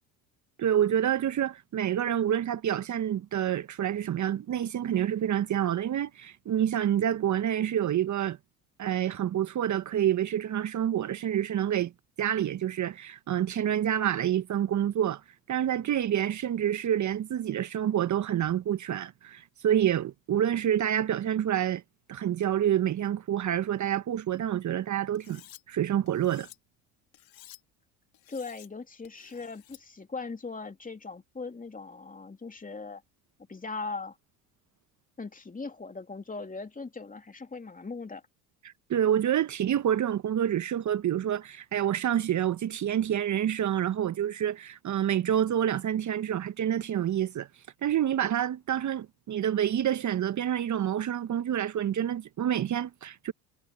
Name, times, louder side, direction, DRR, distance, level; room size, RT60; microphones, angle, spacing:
voice 1, 0.6-8.4 8.8-11.9 12.2-15.2 15.5-21.8 22.1-25.4 25.7-26.5 38.9-47.5 47.8-53.3, right 10 dB, 40° right, 1.3 m, -28 dB
Cutlery silverware, 25.1-25.6 26.1-26.6 27.1-27.6 28.1-28.7 29.0-29.8, left 13 dB, 55° left, 2.3 m, -52 dB
voice 2, 28.3-33.0 33.5-34.2 35.2-38.2, left 4 dB, 20° left, 2.9 m, -39 dB
hypercardioid pair, 70°, 43 cm